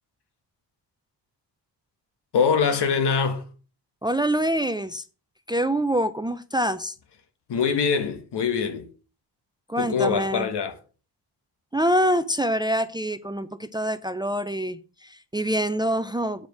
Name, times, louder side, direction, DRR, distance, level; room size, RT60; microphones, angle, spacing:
voice 1, 2.3-3.4 7.5-8.9 9.8-10.7, left 6 dB, 70° left, 1.7 m, -23 dB
voice 2, 4.0-5.0 5.5-6.9 9.7-10.5 11.7-16.5, equal, 10° right, 0.5 m, -25 dB
8.1 x 5.2 x 6.3 m
cardioid pair, 100°, 43 cm